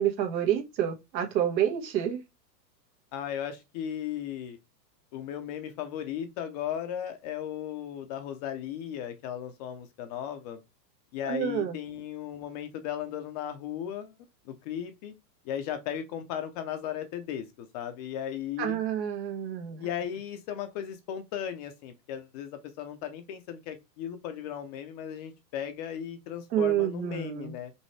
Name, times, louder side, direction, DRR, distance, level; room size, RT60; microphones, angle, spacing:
voice 1, 0.0-2.2 11.2-11.7 18.6-19.9 26.5-27.5, right 10 dB, 90° right, 1.6 m, -28 dB
voice 2, 3.1-4.6 5.1-10.6 11.1-14.1 14.5-15.1 15.4-18.8 19.8-27.7, left 9 dB, 25° left, 0.5 m, -36 dB
5.3 x 3.1 x 3.2 m
supercardioid pair, 145°, 50 cm